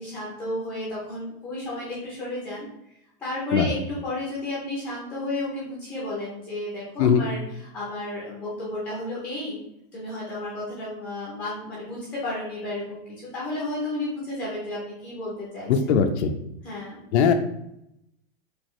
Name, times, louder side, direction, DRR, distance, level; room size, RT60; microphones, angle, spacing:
voice 1, 0.0-2.7 3.2-9.6 9.9-15.7 16.6-17.0, left 1 dB, 5° left, -7 dB, 0.5 m, -32 dB
voice 2, 15.7-16.3 17.1-17.3, left 7 dB, 90° left, 5 dB, 0.5 m, -19 dB
4.6 x 2.4 x 3.0 m, 0.80 s
supercardioid pair, 170°, 32 cm